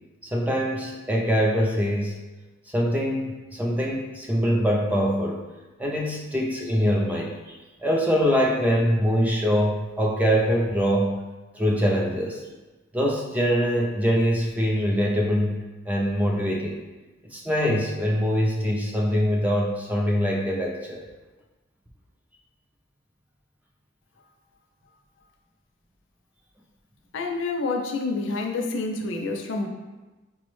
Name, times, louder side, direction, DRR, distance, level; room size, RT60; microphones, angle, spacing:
voice 1, 0.2-2.2 2.7-5.4 5.8-7.6 7.8-11.1 11.5-12.4 12.9-16.8 17.3-21.0, equal, 10° right, -1 dB, 0.3 m, -23 dB
voice 2, 27.1-29.7, left 3 dB, 75° left, 3 dB, 0.4 m, -28 dB
4.5 x 2.1 x 3.0 m, 1.2 s
head